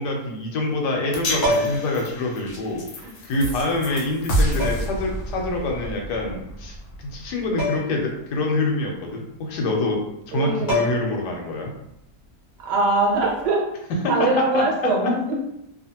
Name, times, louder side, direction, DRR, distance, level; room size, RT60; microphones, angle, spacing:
voice 1, 0.0-2.8 3.2-10.0 10.3-11.7 14.0-14.7 15.0-15.1, left 2 dB, 80° left, 1 dB, 1.2 m, -26 dB
sound 1, 1.1-7.5, equal, 65° left, 1.0 m, -29 dB
sound 2, 1.4-2.0 3.3-3.4 4.6-5.0 7.6-8.0 8.3-8.4 10.3-10.4 10.7-11.3 13.2-13.4, left 1 dB, 35° left, 0.8 m, -25 dB
voice 2, 10.3-10.8 12.6-13.7 14.1-15.5, right 2 dB, 80° right, -2 dB, 1.3 m, -22 dB
2.8 x 2.4 x 2.7 m, 0.81 s
omnidirectional pair, 1.8 m